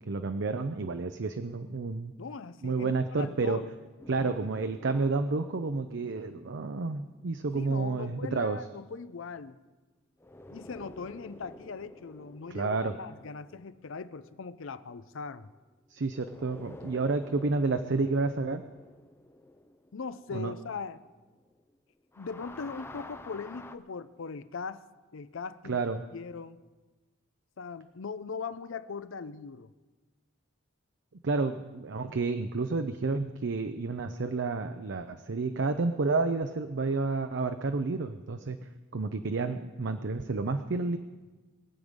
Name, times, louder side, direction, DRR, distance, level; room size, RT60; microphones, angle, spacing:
voice 1, 0.0-2.1 2.6-3.6 4.1-8.6 12.5-12.9 15.9-18.6 20.3-20.5 25.6-26.0 31.2-38.6 38.9-41.0, right 3 dB, 55° right, 8 dB, 0.6 m, -30 dB
voice 2, 2.2-3.7 4.2-4.4 7.5-9.6 10.5-15.5 19.9-21.0 22.2-24.9 25.1-25.8 26.1-26.6 27.6-29.7, left 5 dB, 60° left, 14 dB, 0.5 m, -40 dB
sound 1, 4.0-8.5 10.2-15.7 16.1-21.8 22.0-23.8, left 1 dB, 10° left, 0.5 m, -51 dB
22.5 x 8.0 x 5.2 m, 1.3 s
head